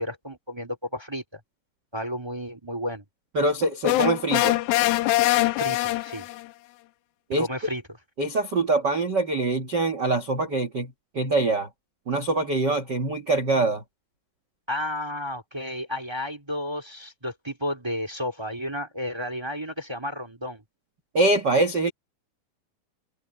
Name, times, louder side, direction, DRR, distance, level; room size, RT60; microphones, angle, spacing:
voice 1, 0.0-1.4 1.9-3.0 5.5-6.3 7.4-7.8 14.7-20.6, left 1 dB, 10° right, 1.5 m, -32 dB
voice 2, 3.3-4.6 7.3-7.5 8.2-11.7 12.1-13.8 21.1-21.9, right 2 dB, 85° right, 0.9 m, -24 dB
sound 1, 3.8-6.5, left 17 dB, 80° left, 2.2 m, -23 dB
omnidirectional pair, 4.8 m